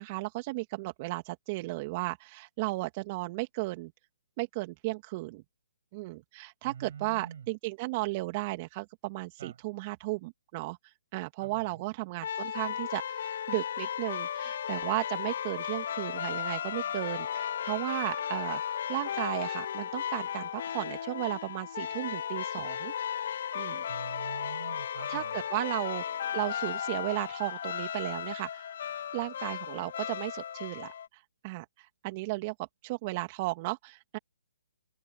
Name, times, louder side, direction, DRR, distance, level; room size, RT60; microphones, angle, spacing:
voice 1, 0.0-3.9 4.4-5.4 5.9-22.9 23.5-23.8 25.1-26.0 26.3-28.7 29.1-34.2, right 23 dB, 35° right, 2.1 m, -35 dB
voice 2, 6.6-7.5 9.4-9.6 11.4-11.8 23.9-25.4, right 8 dB, 60° right, 7.4 m, -45 dB
sound 1, 12.2-31.1, left 9 dB, 55° left, 1.2 m, -35 dB
figure-of-eight pair, 140°, 0 cm